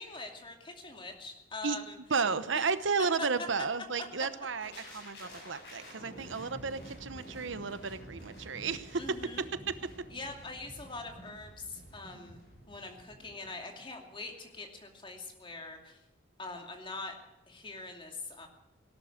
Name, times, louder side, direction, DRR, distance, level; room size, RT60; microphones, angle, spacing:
voice 1, 0.0-2.0 2.5-2.6 3.2-3.3 9.0-9.5 10.1-16.0 16.4-17.1 17.5-18.5, left 3 dB, 25° left, 3 dB, 2.6 m, -43 dB
voice 2, 2.1-9.0 9.7-9.8, right 5 dB, 75° right, 13 dB, 0.9 m, -33 dB
sound 1, 4.6-14.5 14.8-15.0, equal, 65° left, 7.7 m, -50 dB
17.5 x 12.0 x 6.6 m, 0.98 s
head